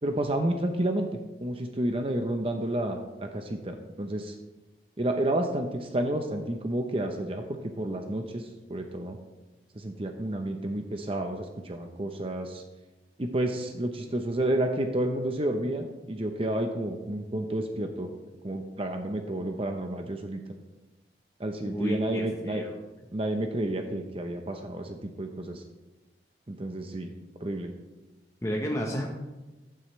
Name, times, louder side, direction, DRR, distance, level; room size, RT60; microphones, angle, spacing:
voice 1, 0.0-1.1 1.4-4.4 5.0-9.2 9.7-12.6 13.2-18.1 18.4-20.4 21.4-22.6 23.1-25.6 26.5-27.1 27.4-27.7, right 1 dB, 30° right, 5 dB, 0.8 m, -30 dB
voice 2, 21.6-22.8 28.4-29.1, equal, 20° left, 0 dB, 1.0 m, -32 dB
15.0 x 9.3 x 3.2 m, 1.1 s
head